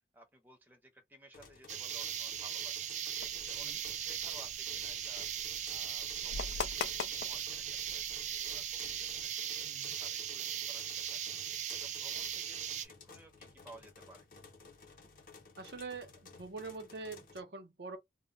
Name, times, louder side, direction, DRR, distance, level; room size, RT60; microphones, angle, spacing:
voice 1, 0.1-5.3 5.7-14.3, right 1 dB, 10° right, 0.6 m, -58 dB
sound 1, 1.3-17.4, left 4 dB, 50° left, 0.7 m, -56 dB
sound 2, 1.7-12.9, right 9 dB, 40° right, 0.3 m, -38 dB
sound 3, 3.2-9.2, left 6 dB, 75° left, 0.3 m, -44 dB
voice 2, 9.6-10.0 15.6-18.0, right 3 dB, 70° right, 0.7 m, -45 dB
2.1 x 2.1 x 3.7 m
head